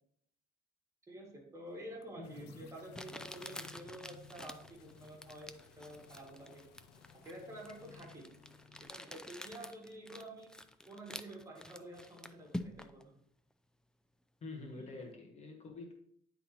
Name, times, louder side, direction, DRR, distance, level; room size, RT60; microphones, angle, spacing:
voice 1, 1.1-6.7 7.2-8.3 8.7-10.5 10.8-13.2 14.7-14.9, right 1 dB, 20° right, -2 dB, 2.1 m, -50 dB
Crumpling crinkling, 2.0-2.1 2.9-13.0, left 1 dB, 5° left, 0.3 m, -48 dB
sound 1, 2.2-8.9, left 7 dB, 80° left, 0.6 m, -58 dB
voice 2, 2.2-2.7 14.4-16.0, left 3 dB, 40° left, 2 dB, 1.2 m, -47 dB
9.7 x 4.0 x 2.9 m, 0.68 s
cardioid pair, 110°, 17 cm